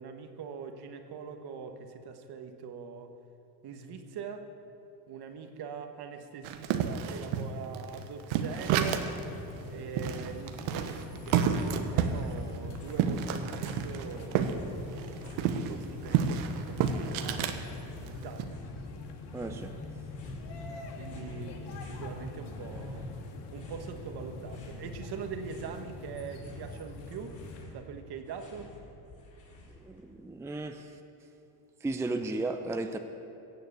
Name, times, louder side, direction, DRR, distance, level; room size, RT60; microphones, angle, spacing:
voice 1, 0.0-3.1 3.6-4.5 5.1-9.0 9.7-14.9 15.6-18.6 21.0-23.1 23.5-28.7, right 6 dB, 55° right, 1.4 m, -43 dB
sound 1, 6.4-9.2 9.6-9.7 10.0-14.6 14.9-17.6 18.1-18.4, right 7 dB, 85° right, 1.1 m, -30 dB
sound 2, 8.3-27.6, left 3 dB, 65° left, 1.8 m, -43 dB
sound 3, 11.0-11.6 11.9-14.0 14.4-17.1 17.4-18.8 19.3-20.5 20.9-22.1 22.5-24.0 24.3-25.8 26.1-30.0, left 1 dB, 40° left, 3.9 m, -52 dB
voice 2, 19.3-19.7 29.8-30.9 31.8-33.0, right 2 dB, 5° right, 0.5 m, -34 dB
16.5 x 6.7 x 8.2 m
cardioid pair, 110°, 46 cm